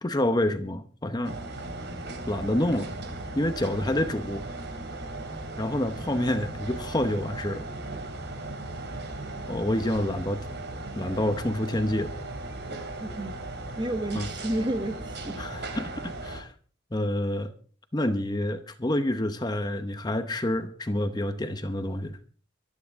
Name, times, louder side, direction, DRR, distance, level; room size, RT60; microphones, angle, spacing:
voice 1, 0.0-1.4 2.3-2.9 3.4-4.5 5.6-7.7 9.5-10.4 11.0-12.1 14.1-14.3 15.4-16.5 16.9-17.5 17.9-22.2, left 1 dB, 20° left, 0.8 m, -28 dB
sound 1, 1.2-16.4, right 2 dB, 55° right, 2.8 m, -37 dB
voice 2, 13.0-13.4 13.8-15.4, right 1 dB, 20° right, 1.3 m, -31 dB
25.0 x 9.8 x 3.6 m
head